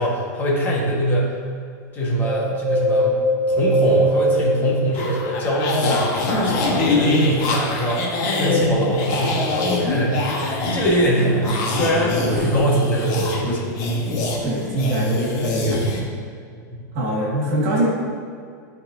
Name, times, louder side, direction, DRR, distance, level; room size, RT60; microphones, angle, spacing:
voice 1, 0.0-1.3 1.9-13.7 16.5-16.6, right 1 dB, 20° left, -4 dB, 1.4 m, -23 dB
Wind, 2.2-5.8 6.3-7.6 8.1-8.2, equal, ahead, 1.6 m, -23 dB
sound 1, 4.9-16.0, left 2 dB, 40° left, 1.1 m, -23 dB
voice 2, 14.4-15.8 16.9-17.9, right 1 dB, 50° right, -3 dB, 1.5 m, -24 dB
11.0 x 4.1 x 2.7 m, 2.2 s
supercardioid pair, 160°, 10 cm